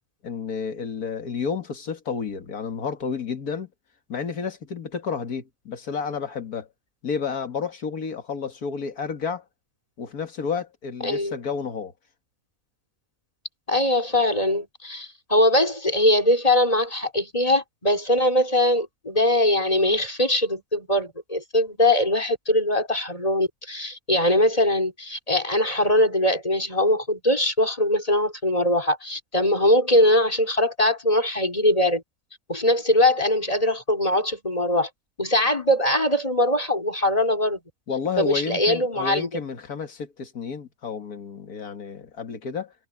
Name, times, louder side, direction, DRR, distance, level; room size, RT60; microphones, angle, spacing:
voice 1, 0.2-3.7 4.1-6.7 7.0-9.4 10.0-11.9 37.9-42.7, left 6 dB, 80° left, 2.3 m, -31 dB
voice 2, 11.0-11.4 13.7-32.0 32.5-34.9 35.2-37.6 38.2-39.3, left 1 dB, 25° left, 3.6 m, -21 dB
omnidirectional pair, 1.6 m